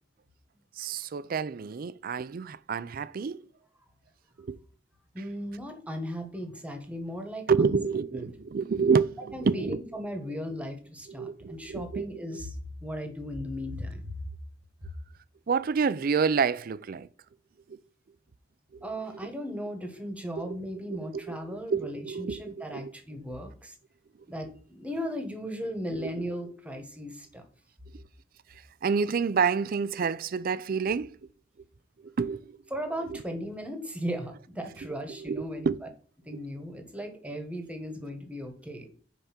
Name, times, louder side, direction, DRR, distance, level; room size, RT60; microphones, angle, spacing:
voice 1, 0.8-3.4 4.4-4.6 7.5-9.8 11.1-12.1 15.5-17.1 17.7-17.8 18.7-18.9 20.4-20.6 20.9-22.9 25.9-26.1 27.9-28.0 28.8-31.2 32.0-32.6 33.1-33.2 35.2-35.8 36.3-36.4, right 5 dB, 50° right, 0.4 m, -28 dB
voice 2, 5.1-7.8 8.1-8.3 9.3-14.0 18.8-23.7 24.3-27.4 32.7-35.7 36.2-38.9, equal, 10° right, 1.4 m, -37 dB
5.5 x 4.9 x 5.9 m
head